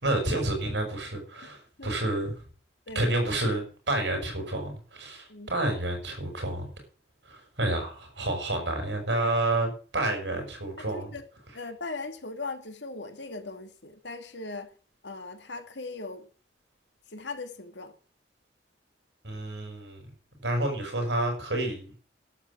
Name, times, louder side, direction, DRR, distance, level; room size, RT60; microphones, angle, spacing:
voice 1, 0.0-2.3 2.9-6.7 7.3-11.1 19.2-20.0 20.4-22.0, right 1 dB, 90° right, 6.7 m, -29 dB
voice 2, 10.9-11.2 11.5-14.7 15.0-16.3 17.1-17.9, left 3 dB, 85° left, 2.5 m, -39 dB
11.5 x 8.3 x 8.6 m
head